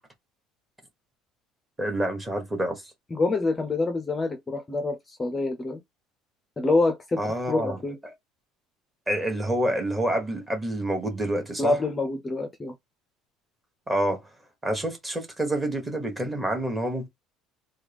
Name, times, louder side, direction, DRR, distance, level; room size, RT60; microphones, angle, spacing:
voice 1, 1.8-2.8 7.2-8.1 9.1-11.8 13.9-14.2 14.6-17.1, right 1 dB, 10° right, 1.1 m, -28 dB
voice 2, 3.1-5.8 6.6-8.0 11.6-12.7, left 3 dB, 15° left, 0.5 m, -26 dB
3.4 x 2.3 x 3.4 m
cardioid pair, 135°, 0 cm